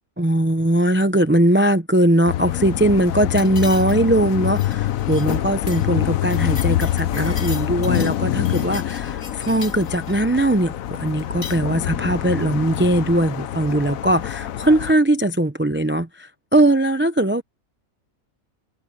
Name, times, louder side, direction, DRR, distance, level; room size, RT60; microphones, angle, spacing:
voice 1, 0.2-17.4, right 1 dB, 15° right, 0.5 m, -20 dB
sound 1, 2.3-14.9, left 12 dB, 75° left, 1.2 m, -25 dB
sound 2, 3.4-4.2 4.4-4.7 5.1-5.4 5.7-5.9 6.1-8.2 8.4-10.2 11.2-11.6, left 4 dB, 55° left, 2.7 m, -38 dB
omnidirectional pair, 1.5 m